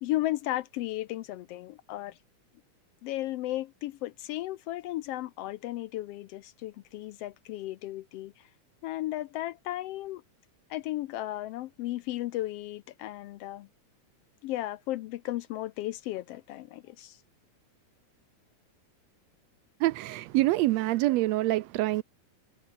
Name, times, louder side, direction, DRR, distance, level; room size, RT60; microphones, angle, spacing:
voice 1, 0.0-2.2 3.0-8.5 8.8-10.2 10.7-13.7 14.4-17.2, left 15 dB, 80° left, 1.4 m, -35 dB
voice 2, 19.8-22.0, right 17 dB, 80° right, 1.6 m, -26 dB
omnidirectional pair, 3.4 m